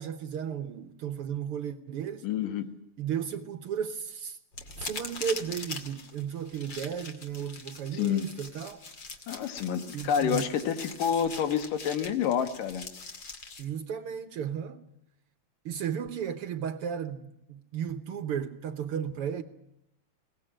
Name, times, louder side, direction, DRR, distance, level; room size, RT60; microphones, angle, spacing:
voice 1, 0.0-2.3 3.0-4.4 4.8-8.8 9.9-10.5 13.6-14.8 15.6-19.4, right 8 dB, 70° right, 1.3 m, -34 dB
voice 2, 2.2-2.7 8.0-8.3 9.3-12.9, left 8 dB, 80° left, 3.2 m, -28 dB
sound 1, 4.5-13.6, left 3 dB, 35° left, 2.5 m, -42 dB
22.0 x 18.5 x 9.0 m
omnidirectional pair, 3.8 m